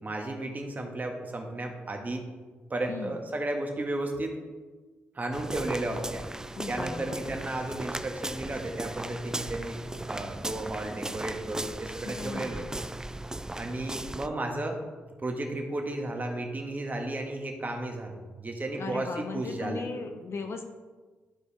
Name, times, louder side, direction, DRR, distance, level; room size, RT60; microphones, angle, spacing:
voice 1, 0.0-2.2 2.7-4.4 5.1-6.2 6.7-12.8 13.5-14.8 15.2-19.9, right 2 dB, 35° right, 2 dB, 1.6 m, -34 dB
voice 2, 2.9-3.2 6.5-7.2 12.0-12.6 18.8-20.7, left 4 dB, 55° left, 5 dB, 0.8 m, -37 dB
sound 1, 5.3-14.3, right 1 dB, 10° right, 0.3 m, -37 dB
12.0 x 4.6 x 3.4 m, 1.3 s
supercardioid pair, 50°, 5 cm